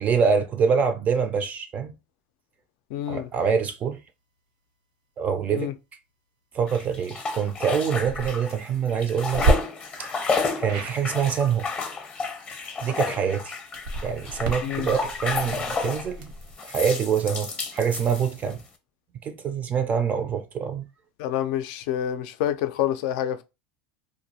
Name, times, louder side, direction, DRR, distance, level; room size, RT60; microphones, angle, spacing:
voice 1, 0.0-1.9 3.1-4.0 5.2-5.7 6.5-9.4 10.0-10.1 10.6-11.7 12.8-13.5 14.0-16.3 16.6-18.6 19.2-20.9, right 7 dB, 35° right, 0.3 m, -25 dB
voice 2, 2.9-3.3 5.5-5.7 14.6-14.9 21.2-23.4, left 11 dB, 70° left, 0.3 m, -27 dB
sound 1, 6.7-8.6 8.9-16.1 16.6-18.6, left 4 dB, 25° left, 0.6 m, -31 dB
sound 2, 8.0-8.3 9.3-9.5 10.6-11.0 13.7-16.5, right 3 dB, 80° right, 0.8 m, -29 dB
2.3 x 2.0 x 2.7 m
supercardioid pair, 110°, 5 cm